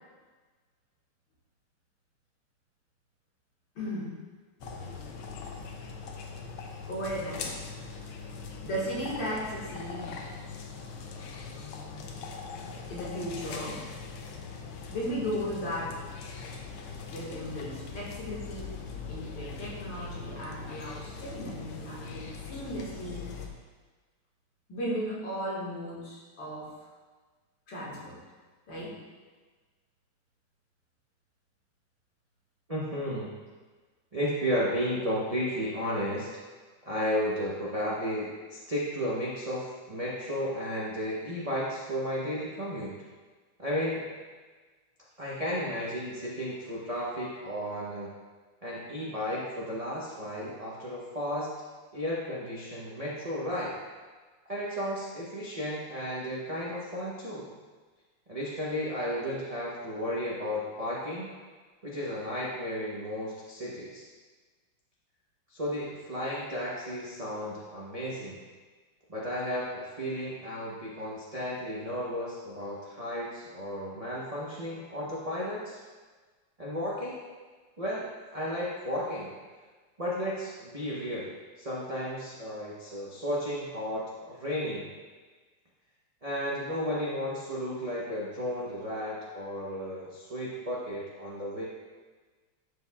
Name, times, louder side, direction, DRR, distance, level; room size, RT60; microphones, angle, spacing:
voice 1, 3.8-4.2 6.9-7.6 7.8-7.9 8.6-10.2 12.9-13.9 14.9-16.0 17.1-23.3 24.7-26.8 27.7-28.2 28.7-29.0, equal, 60° left, -6 dB, 2.4 m, -36 dB
sound 1, 4.6-23.5, left 4 dB, 80° left, 1.5 m, -41 dB
voice 2, 32.7-33.3 34.1-36.3 36.8-42.9 43.6-44.0 45.2-48.1 48.6-51.5 51.9-53.7 54.5-57.5 58.3-61.3 61.8-64.1 65.5-68.4 69.1-75.8 76.6-77.2 77.8-79.3 80.0-81.3 81.6-84.9 86.2-91.6, equal, 65° right, -7 dB, 0.3 m, -33 dB
11.5 x 4.7 x 2.4 m, 1.4 s
omnidirectional pair, 2.4 m